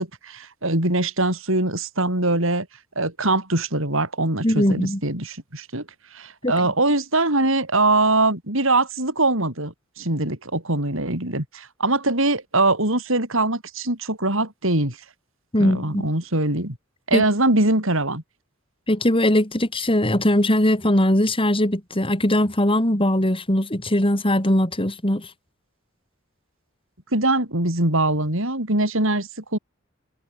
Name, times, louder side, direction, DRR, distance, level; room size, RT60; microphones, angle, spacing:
voice 1, 0.0-2.7 3.0-5.8 6.1-15.0 15.6-16.8 17.1-18.2 27.1-29.6, right 2 dB, 65° right, 7.6 m, -22 dB
voice 2, 4.4-5.0 6.4-6.5 15.5-16.0 17.1-17.2 18.9-25.3, left 1 dB, 25° left, 5.1 m, -20 dB
open air
head